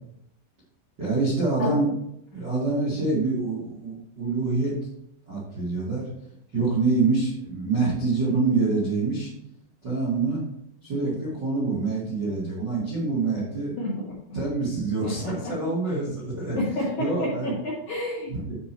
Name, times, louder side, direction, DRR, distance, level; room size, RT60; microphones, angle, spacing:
voice 1, 1.0-1.9 2.3-4.8 5.3-6.1 6.5-9.3 9.8-10.4 10.8-13.7 14.3-16.6 17.0-17.5 18.3-18.6, right 3 dB, 45° right, -7 dB, 1.5 m, -26 dB
voice 2, 13.8-14.4 15.0-15.7 16.6-18.4, left 1 dB, 55° left, -6 dB, 2.2 m, -30 dB
11.5 x 4.9 x 3.1 m, 0.76 s
omnidirectional pair, 5.5 m